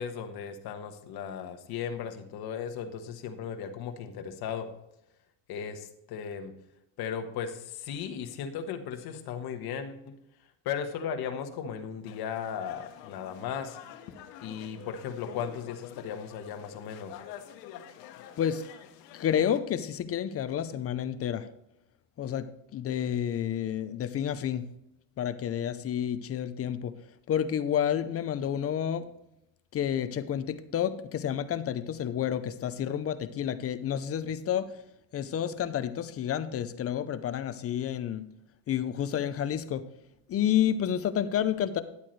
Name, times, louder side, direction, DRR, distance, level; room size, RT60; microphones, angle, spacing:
voice 1, 0.0-4.7 5.5-6.5 7.0-10.2 10.6-13.8 14.4-17.2, left 7 dB, 50° left, 6 dB, 1.4 m, -36 dB
sound 1, 12.0-19.6, left 10 dB, 85° left, 1.3 m, -48 dB
voice 2, 19.1-21.5 22.2-24.6 25.2-26.9 27.3-29.0 29.7-34.7 35.1-38.3 38.7-39.9 40.3-41.8, left 9 dB, 30° left, 12 dB, 0.6 m, -30 dB
11.0 x 8.3 x 3.2 m, 0.82 s
supercardioid pair, 120°, 47 cm